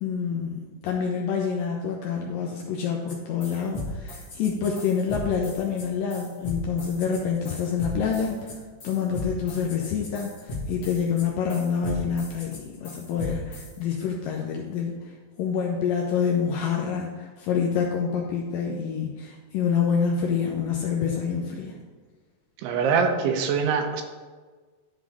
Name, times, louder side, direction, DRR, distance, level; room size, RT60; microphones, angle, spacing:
voice 1, 0.0-8.5 8.8-15.0 15.4-21.8, left 6 dB, 75° left, 0 dB, 2.1 m, -27 dB
sound 1, 3.1-3.2 3.4-13.7, left 2 dB, 45° left, 1.9 m, -37 dB
voice 2, 22.6-24.0, right 5 dB, 80° right, 5 dB, 2.7 m, -23 dB
11.0 x 3.9 x 4.8 m, 1.4 s
omnidirectional pair, 4.7 m